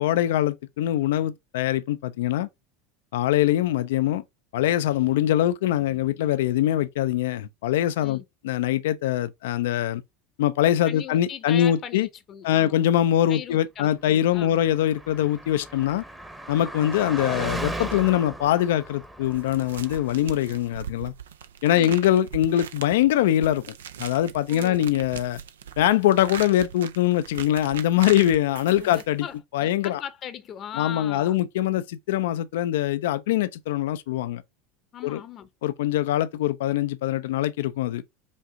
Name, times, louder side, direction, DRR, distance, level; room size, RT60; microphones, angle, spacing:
voice 1, 0.0-2.5 3.1-4.2 4.5-10.0 10.4-12.1 12.4-16.0 16.5-21.1 21.6-23.6 24.0-25.4 25.8-29.2 29.5-30.0 30.8-34.4 35.0-35.2 35.6-38.0, left 12 dB, 75° left, 0.4 m, -23 dB
voice 2, 10.8-12.8 13.3-14.6 21.7-22.1 24.5-24.9 28.7-31.4 34.9-35.5, left 9 dB, 40° left, 0.7 m, -39 dB
Car passing by, 14.4-20.4, right 1 dB, 10° right, 0.9 m, -36 dB
sound 1, 19.2-29.4, right 8 dB, 85° right, 0.4 m, -40 dB
5.1 x 2.5 x 3.7 m
hypercardioid pair, 90°, 0 cm